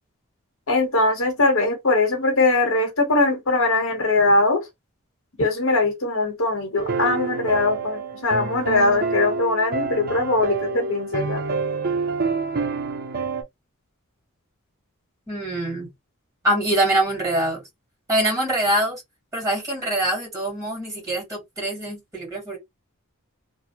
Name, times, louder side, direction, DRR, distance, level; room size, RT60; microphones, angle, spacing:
voice 1, 0.7-4.6 5.4-11.4, left 2 dB, 65° left, 1.1 m, -21 dB
sound 1, 6.8-13.4, right 4 dB, 45° right, 0.6 m, -27 dB
voice 2, 15.3-15.9 16.4-17.6 18.1-19.0 19.3-22.6, right 1 dB, 15° right, 2.0 m, -24 dB
2.9 x 2.1 x 2.8 m
head